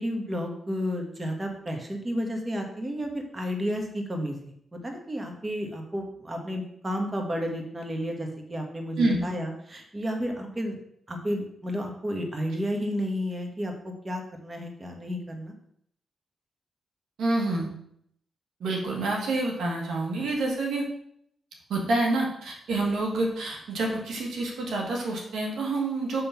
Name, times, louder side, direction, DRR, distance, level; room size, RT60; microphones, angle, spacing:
voice 1, 0.0-4.4 4.7-10.8 11.1-15.5, equal, 30° right, 3 dB, 1.6 m, -32 dB
voice 2, 17.2-17.7 18.6-20.9 21.7-26.2, right 2 dB, 80° right, -1 dB, 1.5 m, -27 dB
6.4 x 3.9 x 5.8 m, 0.71 s
supercardioid pair, 55°, 0 cm